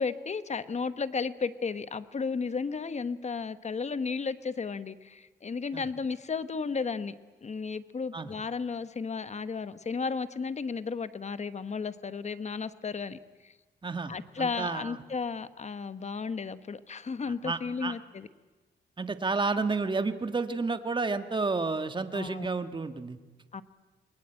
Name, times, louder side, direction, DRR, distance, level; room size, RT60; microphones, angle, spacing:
voice 1, 0.0-7.1 7.4-13.5 14.1-18.3 22.1-22.5 23.5-23.6, left 5 dB, 35° left, 13 dB, 1.1 m, -34 dB
voice 2, 13.8-15.0 17.4-17.9 19.0-23.2, right 3 dB, 25° right, 9 dB, 1.5 m, -31 dB
27.5 x 21.5 x 8.9 m, 1.3 s
cardioid pair, 105°, 19 cm